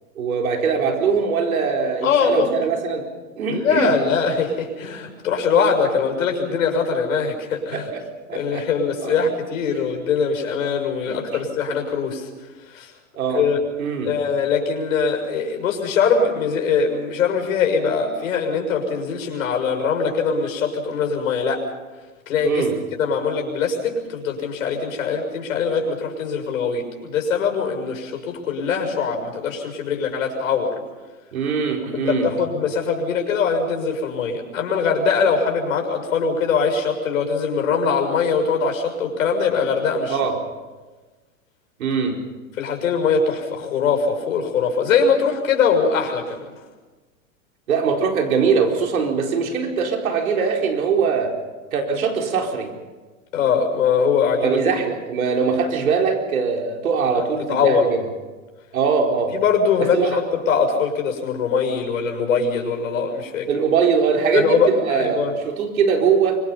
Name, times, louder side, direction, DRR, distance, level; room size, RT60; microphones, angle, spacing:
voice 1, 0.2-3.0 3.4-3.9 7.7-8.7 9.0-9.2 11.0-11.4 13.1-13.4 13.8-14.1 22.4-22.7 31.3-32.3 40.1-40.3 41.8-42.2 47.7-51.3 51.7-52.7 54.4-58.0 58.7-59.4 59.8-60.2 63.5-66.4, right 5 dB, 85° right, 2 dB, 4.4 m, -22 dB
voice 2, 2.0-2.6 3.5-7.9 8.3-12.3 12.7-12.9 13.3-13.6 14.0-21.7 22.3-22.6 23.0-30.7 31.9-40.3 42.6-46.4 53.3-54.6 57.1-57.8 59.3-63.5 64.3-65.3, left 5 dB, 80° left, 3 dB, 6.7 m, -22 dB
25.0 x 24.5 x 5.7 m, 1.3 s
hypercardioid pair, 120°, 41 cm